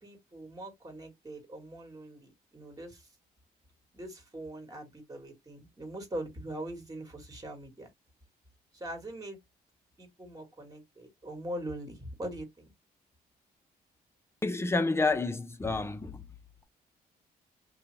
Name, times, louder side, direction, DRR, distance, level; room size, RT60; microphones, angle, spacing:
voice 1, 0.0-3.1 3.9-7.9 8.7-9.4 10.0-12.7, right 1 dB, 20° right, 1.4 m, -42 dB
voice 2, 14.4-16.2, left 3 dB, 15° left, 0.6 m, -29 dB
2.7 x 2.3 x 3.1 m
cardioid pair, 75°, 17 cm